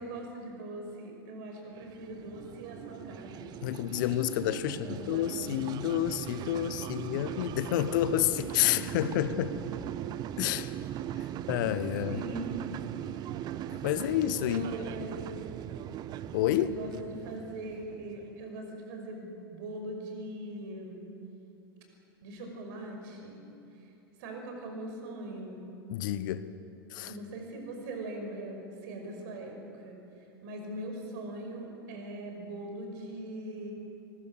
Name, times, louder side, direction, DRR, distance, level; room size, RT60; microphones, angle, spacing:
voice 1, 0.0-3.5 4.7-5.6 12.1-12.6 12.9-13.2 14.5-15.7 16.6-21.0 22.2-23.4 24.2-25.6 27.0-30.0 30.4-33.7, right 1 dB, 50° right, 3 dB, 5.7 m, -41 dB
sound 1, 1.7-18.4, right 11 dB, 30° right, 0.8 m, -39 dB
voice 2, 3.6-9.6 10.4-10.7 11.5-12.2 13.7-14.6 16.3-16.7 25.9-26.5 26.9-27.1, left 13 dB, 50° left, 14 dB, 0.9 m, -29 dB
24.5 x 21.5 x 6.7 m, 2.9 s
figure-of-eight pair, 90°, 13 cm